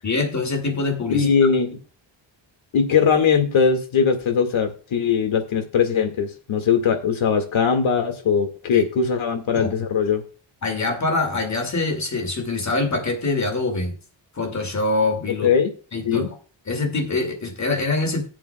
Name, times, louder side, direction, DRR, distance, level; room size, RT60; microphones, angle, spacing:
voice 1, 0.0-1.3 8.7-8.8 9.5-9.7 10.6-13.9 14.3-15.5 15.9-16.3 16.7-18.3, left 3 dB, 35° left, 5 dB, 2.3 m, -24 dB
voice 2, 1.1-1.8 2.7-10.2 15.4-15.7 16.0-16.3, left 6 dB, 75° left, 7 dB, 2.1 m, -20 dB
17.0 x 7.6 x 2.3 m, 0.36 s
wide cardioid pair, 165°, 47 cm